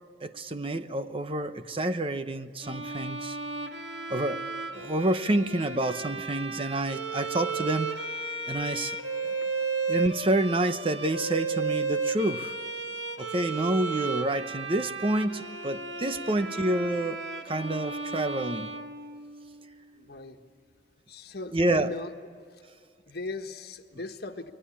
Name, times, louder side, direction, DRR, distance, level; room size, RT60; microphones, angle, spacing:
voice 1, 0.2-3.4 4.1-4.4 4.7-8.0 8.5-9.0 9.2-9.3 9.9-12.5 13.2-18.7 21.5-21.9, right 1 dB, 30° right, 0.9 m, -28 dB
Bowed string instrument, 2.6-19.6, right 4 dB, 80° right, 2.0 m, -34 dB
voice 2, 19.9-20.4 21.1-22.1 22.5-22.6 23.1-24.5, left 3 dB, 60° left, 1.5 m, -38 dB
29.0 x 22.0 x 8.6 m
head